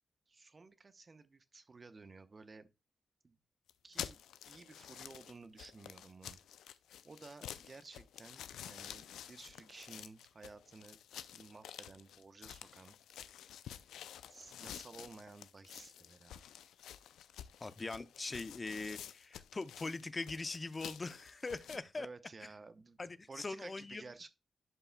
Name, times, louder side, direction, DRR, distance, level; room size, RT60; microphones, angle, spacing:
voice 1, 0.3-2.7 3.2-3.4 3.8-6.4 7.0-11.0 11.3-13.0 14.3-16.4 22.0-23.0 23.3-24.3, right 3 dB, 45° right, 0.8 m, -54 dB
sound 1, 3.7-21.8, left 10 dB, 85° left, 0.3 m, -50 dB
voice 2, 17.6-22.1 23.0-24.0, left 3 dB, 40° left, 0.6 m, -42 dB
11.0 x 5.5 x 2.2 m
supercardioid pair, 40°, 0 cm